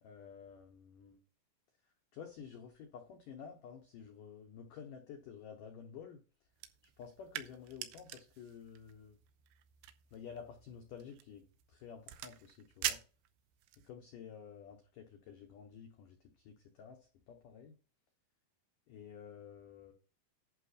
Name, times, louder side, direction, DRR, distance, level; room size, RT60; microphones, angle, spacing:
voice 1, 0.0-1.2 2.1-6.2 7.0-9.2 10.1-13.0 13.8-17.0 17.3-17.7 18.9-19.9, left 7 dB, 80° left, 4 dB, 1.9 m, -51 dB
sound 1, 6.5-13.9, right 13 dB, 85° right, 3.0 m, -45 dB
11.0 x 5.1 x 4.2 m, 0.35 s
omnidirectional pair, 5.3 m